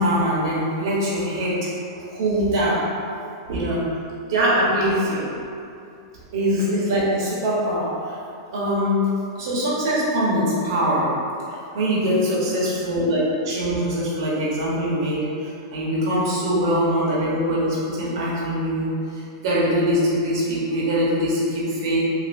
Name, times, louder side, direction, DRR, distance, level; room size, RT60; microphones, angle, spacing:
voice 1, 0.0-2.8 3.5-3.8 4.3-5.3 6.3-8.1 8.5-9.0 9.4-11.1 11.7-15.2 15.7-18.9 19.4-22.0, equal, 65° right, -6 dB, 1.0 m, -22 dB
3.4 x 2.6 x 2.6 m, 2.6 s
supercardioid pair, 140°, 2 cm